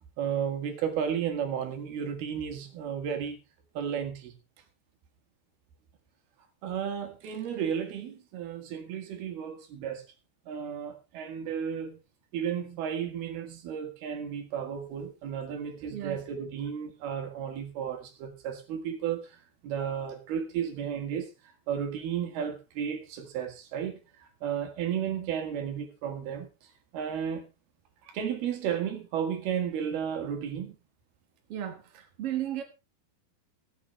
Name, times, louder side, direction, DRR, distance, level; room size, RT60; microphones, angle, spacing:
voice 1, 0.2-3.4 3.8-4.4 6.6-10.0 10.5-12.0 12.3-21.3 21.7-26.5 26.9-27.5 28.1-30.8, right 8 dB, 85° right, 3.9 m, -33 dB
voice 2, 31.5-32.6, right 11 dB, 55° right, 1.7 m, -35 dB
23.0 x 7.9 x 3.2 m
omnidirectional pair, 4.3 m